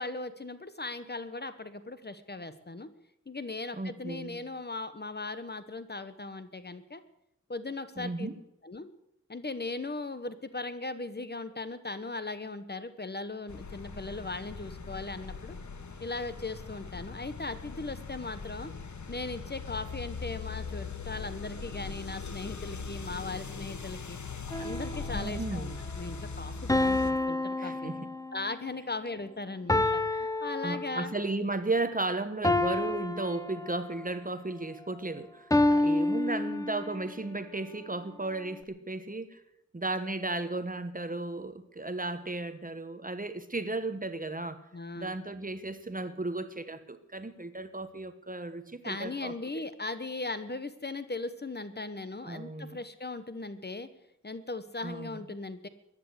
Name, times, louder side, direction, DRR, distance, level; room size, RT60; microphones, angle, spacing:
voice 1, 0.0-2.9 3.3-7.0 7.5-8.3 8.6-8.9 9.3-15.6 16.0-18.7 19.1-24.2 24.6-27.9 28.3-31.1 44.7-45.1 48.8-53.9 54.2-55.7, left 3 dB, 35° left, 12 dB, 1.0 m, -38 dB
voice 2, 3.7-4.4 8.0-8.4 25.1-25.8 27.6-28.1 30.6-39.4 39.7-44.6 45.0-49.6 52.2-52.8 54.8-55.2, right 2 dB, 30° right, 11 dB, 1.1 m, -35 dB
sound 1, 13.5-27.1, left 5 dB, 80° left, 1.2 m, -40 dB
sound 2, 24.5-25.3 26.7-28.5 29.7-31.3 32.4-34.1 35.5-37.1, left 2 dB, 10° left, 0.8 m, -29 dB
14.5 x 10.5 x 8.1 m, 0.82 s
wide cardioid pair, 80°, 29 cm